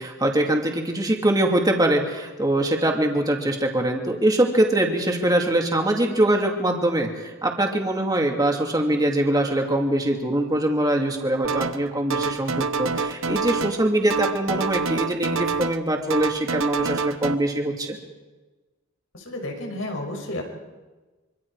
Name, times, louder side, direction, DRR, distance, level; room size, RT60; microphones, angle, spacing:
voice 1, 0.0-18.0, right 1 dB, 20° right, 2 dB, 2.5 m, -23 dB
sound 1, 11.4-11.8 12.1-13.8 14.1-15.8 16.1-17.3, right 4 dB, 90° right, 1.0 m, -27 dB
voice 2, 19.1-20.4, left 1 dB, 85° left, 2 dB, 5.9 m, -31 dB
25.5 x 25.5 x 4.9 m, 1.2 s
head